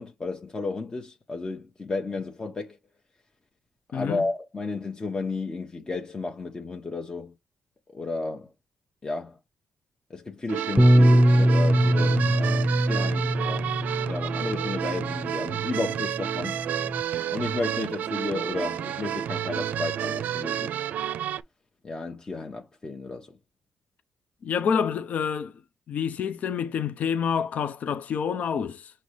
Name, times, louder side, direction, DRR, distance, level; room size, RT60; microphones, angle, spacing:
voice 1, 0.0-2.8 3.9-7.3 7.9-8.5 9.0-9.4 10.1-13.7 14.0-16.6 17.3-20.9 21.8-23.3, left 3 dB, 30° left, 0.9 m, -33 dB
voice 2, 3.9-4.3 24.4-25.5 25.9-28.9, left 7 dB, 65° left, 0.5 m, -27 dB
sound 1, 10.5-21.4, right 10 dB, 80° right, 0.4 m, -30 dB
Bass guitar, 10.8-15.3 16.0-17.0, equal, 10° right, 0.4 m, -22 dB
5.3 x 2.7 x 3.1 m
cardioid pair, 75°, 3 cm